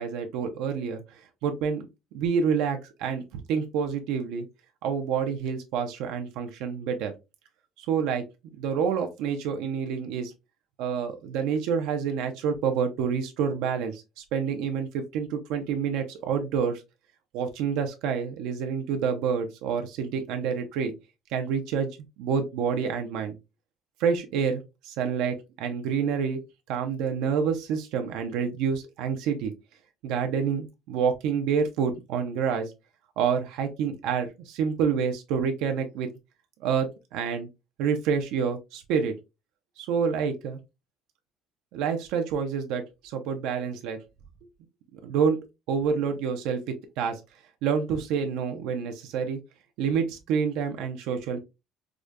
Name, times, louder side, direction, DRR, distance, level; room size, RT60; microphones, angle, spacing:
voice 1, 0.0-1.9 2.1-4.5 4.8-7.1 7.8-8.2 8.6-10.3 10.8-16.8 17.3-20.9 21.3-21.9 22.2-23.4 24.0-26.4 26.7-29.5 30.0-32.7 33.2-36.1 36.6-37.5 37.8-39.1 39.8-40.6 41.7-44.0 44.9-45.4 45.7-47.2 47.6-49.4 49.8-51.4, right 6 dB, 85° right, 0.5 m, -28 dB
4.8 x 2.2 x 2.4 m
cardioid pair, 175°, 0 cm